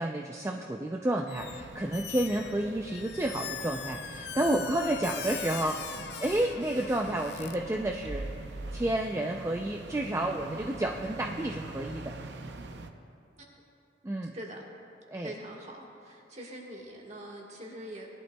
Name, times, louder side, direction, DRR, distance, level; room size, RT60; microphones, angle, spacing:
voice 1, 0.0-8.4 8.7-12.2 14.0-14.3 15.1-15.3, right 1 dB, 15° right, 1 dB, 0.4 m, -31 dB
Squeak, 1.3-1.6 1.9-7.6, left 9 dB, 60° left, 0.5 m, -41 dB
sound 1, 1.4-12.9, right 2 dB, 65° right, 0.6 m, -45 dB
sound 2, 6.9-9.6 10.5-11.5, right 1 dB, 85° right, 1.1 m, -44 dB
voice 2, 14.2-14.6 15.2-18.1, right 1 dB, 35° right, -1 dB, 1.5 m, -43 dB
19.0 x 11.5 x 2.3 m, 2.6 s
head